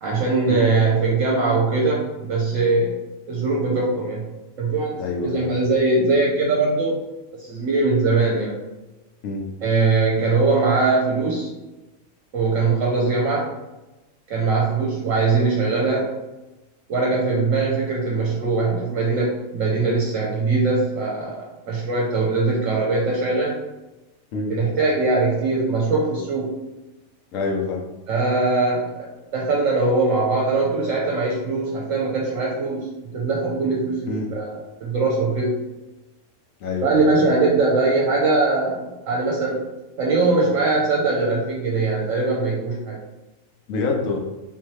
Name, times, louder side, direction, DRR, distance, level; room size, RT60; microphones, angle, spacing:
voice 1, 0.0-2.9 3.3-4.2 4.6-7.0 7.4-8.5 9.6-11.5 12.3-13.5 14.3-16.1 16.9-23.6 24.5-26.6 28.1-32.9 33.1-35.5 36.8-39.6 40.0-43.0, right 3 dB, 70° right, -2 dB, 0.9 m, -21 dB
voice 2, 5.0-5.5 9.2-9.5 24.3-24.5 27.3-27.8 34.1-34.3 36.6-36.9 43.7-44.2, left 3 dB, 70° left, 1 dB, 1.1 m, -26 dB
3.7 x 3.0 x 3.1 m, 1.0 s
omnidirectional pair, 1.5 m